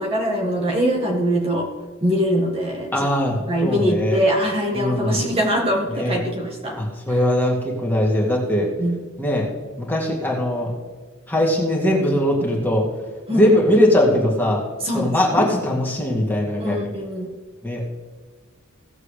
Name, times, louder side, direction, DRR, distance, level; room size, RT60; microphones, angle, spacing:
voice 1, 0.0-1.7 2.0-3.1 3.5-6.8 7.1-7.2 8.8-9.0 13.3-13.5 14.8-15.5 16.6-17.3, equal, 25° right, -1 dB, 1.6 m, -22 dB
voice 2, 2.9-4.2 4.7-5.2 5.9-6.2 6.8-8.7 9.2-9.5 9.8-10.7 11.3-12.8 13.3-14.6 14.9-16.8 17.6-17.8, left 1 dB, 10° left, -3 dB, 2.2 m, -20 dB
17.5 x 7.4 x 3.3 m, 1.5 s
head